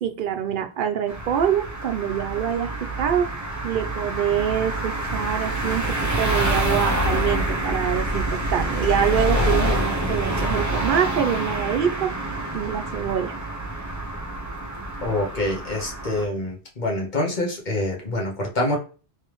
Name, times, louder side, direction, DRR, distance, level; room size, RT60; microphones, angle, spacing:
voice 1, 0.0-3.3 3.6-12.1 12.5-13.4, right 9 dB, 60° right, 7 dB, 0.7 m, -25 dB
sound 1, 1.1-16.2, right 1 dB, 20° right, 0.8 m, -26 dB
voice 2, 15.0-18.8, left 1 dB, 45° left, -2 dB, 1.1 m, -26 dB
3.3 x 3.2 x 3.0 m, 0.36 s
omnidirectional pair, 1.1 m